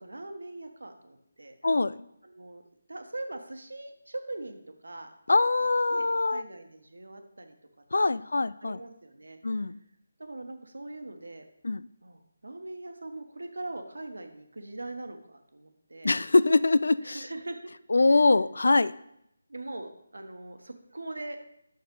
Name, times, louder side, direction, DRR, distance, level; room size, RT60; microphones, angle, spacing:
voice 1, 0.0-1.6 2.2-2.6 2.9-5.1 5.9-7.5 8.0-9.7 10.2-11.4 12.0-16.2 17.0-17.6 18.1-18.2 19.5-21.4, right 2 dB, 85° right, 6 dB, 1.3 m, -41 dB
voice 2, 1.6-2.0 5.3-6.4 7.9-8.8 9.4-9.8 11.6-11.9 16.0-17.2 17.9-18.9, left 3 dB, 75° left, 17 dB, 0.4 m, -23 dB
8.7 x 6.3 x 3.8 m, 0.76 s
figure-of-eight pair, 160°, 0 cm